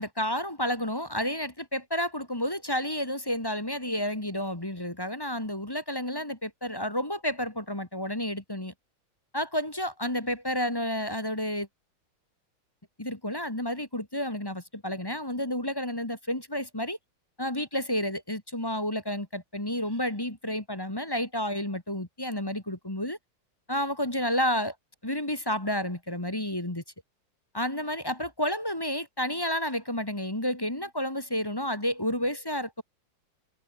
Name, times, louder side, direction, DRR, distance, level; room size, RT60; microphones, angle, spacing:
voice 1, 0.0-8.7 9.3-11.7 13.0-17.0 17.4-23.2 23.7-24.7 25.0-26.8 27.5-32.8, left 1 dB, 10° left, 2.2 m, -30 dB
omnidirectional pair, 2.0 m